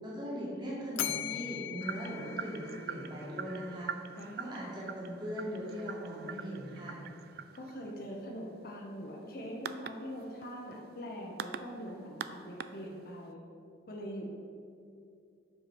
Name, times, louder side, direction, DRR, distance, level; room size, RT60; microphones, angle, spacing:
voice 1, 0.0-3.9 4.4-7.0, equal, 25° right, -7 dB, 1.9 m, -39 dB
Bell, 0.9-3.2, left 12 dB, 85° left, 0.4 m, -39 dB
sound 1, 1.8-13.3, right 7 dB, 50° right, 0.3 m, -45 dB
voice 2, 4.2-4.7 7.5-13.4 13.9-14.4, equal, 50° left, -1 dB, 1.0 m, -43 dB
7.9 x 4.7 x 6.2 m, 2.5 s
head